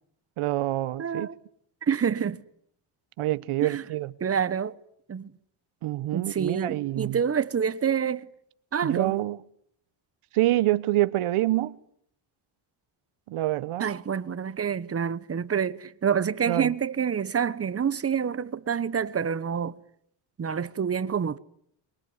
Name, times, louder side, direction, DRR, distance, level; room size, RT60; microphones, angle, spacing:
voice 1, 0.4-1.3 3.2-4.1 5.8-7.2 8.8-9.4 10.3-11.8 13.3-13.9 16.5-16.7, right 16 dB, 85° right, 1.2 m, -26 dB
voice 2, 1.0-1.4 1.8-2.4 3.6-3.8 4.2-4.7 5.1-5.3 6.1-8.3 8.7-9.2 13.8-19.8 20.4-21.4, right 7 dB, 30° right, 1.1 m, -27 dB
25.5 x 22.5 x 9.7 m
cardioid pair, 135°, 49 cm